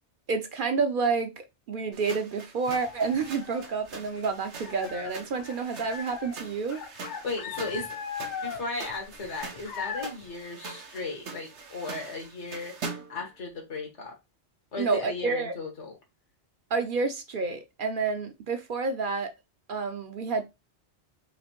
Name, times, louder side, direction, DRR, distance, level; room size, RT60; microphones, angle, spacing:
voice 1, 0.3-6.8 14.8-15.5 16.7-19.3 19.7-20.4, right 4 dB, 55° right, 0.6 m, -29 dB
sound 1, 1.9-13.3, right 4 dB, 80° right, 1.2 m, -43 dB
sound 2, 2.7-4.2 4.5-10.2, left 7 dB, 50° left, 0.6 m, -39 dB
voice 2, 7.2-7.9 8.4-14.1 14.7-15.9, left 3 dB, 85° left, 1.6 m, -36 dB
5.0 x 2.6 x 2.9 m
omnidirectional pair, 1.2 m